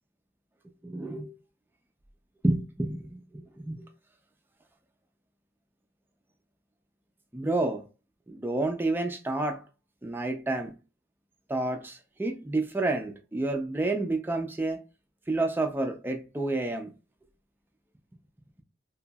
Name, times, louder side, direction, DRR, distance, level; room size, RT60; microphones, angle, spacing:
voice 1, 0.8-1.3 2.4-3.9 7.3-7.8 8.3-9.6 10.0-10.7 11.5-14.8 15.3-16.9, right 2 dB, 10° right, 0.4 m, -29 dB
3.0 x 2.6 x 2.2 m
head